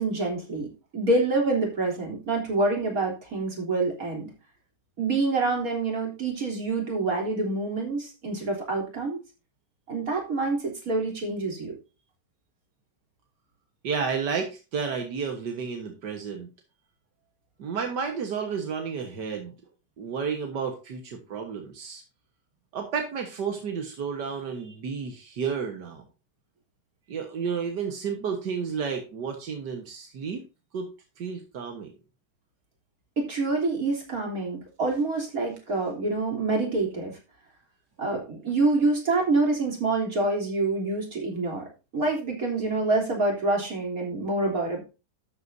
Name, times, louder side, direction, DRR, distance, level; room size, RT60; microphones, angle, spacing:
voice 1, 0.0-4.3 5.0-9.2 9.9-11.8 33.2-37.2 38.0-41.6 41.9-44.8, right 3 dB, 55° right, 0 dB, 3.9 m, -26 dB
voice 2, 13.8-16.5 17.6-19.5 20.0-22.0 22.7-26.0 27.1-30.4 30.7-30.9 31.2-31.9, right 6 dB, 85° right, 4 dB, 2.0 m, -31 dB
12.5 x 8.0 x 2.7 m, 0.29 s
omnidirectional pair, 1.8 m